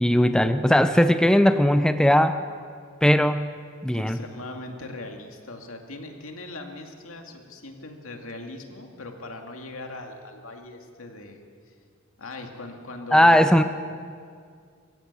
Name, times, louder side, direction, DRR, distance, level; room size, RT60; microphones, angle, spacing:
voice 1, 0.0-2.4 3.0-3.5 3.8-4.2 13.1-13.6, equal, 5° left, 9 dB, 0.5 m, -18 dB
voice 2, 3.9-11.7 12.2-13.6, left 2 dB, 70° left, 3 dB, 2.4 m, -40 dB
23.0 x 15.0 x 8.4 m, 2.2 s
head